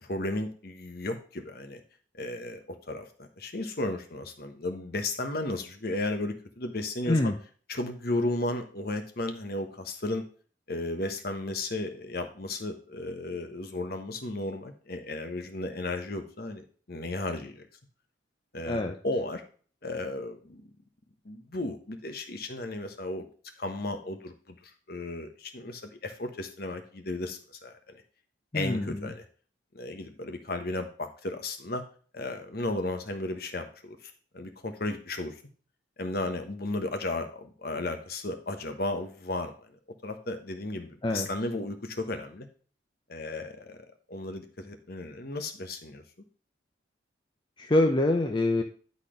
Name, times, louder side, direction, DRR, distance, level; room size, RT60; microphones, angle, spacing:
voice 1, 0.0-1.8 2.2-2.6 2.9-7.3 7.7-10.2 10.7-17.7 18.5-19.4 19.8-20.6 21.2-23.3 23.6-28.0 28.5-29.2 29.7-31.8 32.1-35.4 36.0-39.5 40.0-42.5 43.1-46.0, left 2 dB, 50° left, 7 dB, 1.2 m, -34 dB
voice 2, 28.5-29.1 41.0-41.3 47.6-48.6, left 1 dB, 25° left, 4 dB, 0.5 m, -25 dB
10.5 x 4.1 x 5.1 m, 0.42 s
head